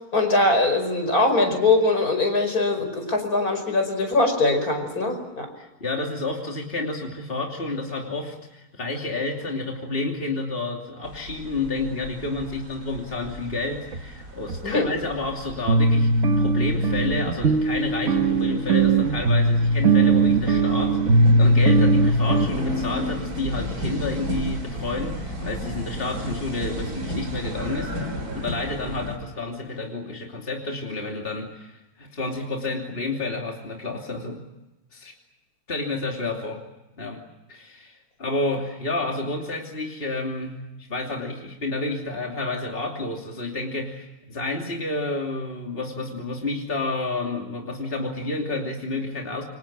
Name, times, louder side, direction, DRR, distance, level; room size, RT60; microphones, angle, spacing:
voice 1, 0.1-5.5 14.6-14.9, left 2 dB, 70° left, 6 dB, 5.7 m, -22 dB
voice 2, 5.6-16.1 16.4-34.4 34.9-35.1 35.7-36.6 37.0-37.2 37.5-49.4, left 2 dB, 35° left, 1 dB, 3.1 m, -30 dB
sound 1, 11.0-29.2, equal, 75° right, 4.3 m, -34 dB
sound 2, 13.9-14.0 14.5-14.6 15.0-15.1 15.7-22.5, right 2 dB, 55° right, 1.5 m, -19 dB
28.5 x 25.0 x 7.4 m, 1.0 s
omnidirectional pair, 1.6 m